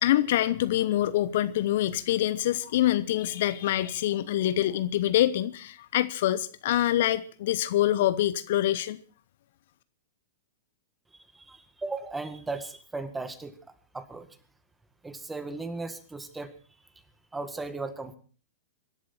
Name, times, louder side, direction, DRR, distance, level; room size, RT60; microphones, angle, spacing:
voice 1, 0.0-9.0, left 13 dB, 55° left, 0.8 m, -25 dB
voice 2, 11.3-13.5 13.9-14.3 15.0-16.5 17.3-18.2, right 3 dB, 10° right, 1.9 m, -36 dB
25.0 x 11.5 x 4.4 m
figure-of-eight pair, 105°, 0 cm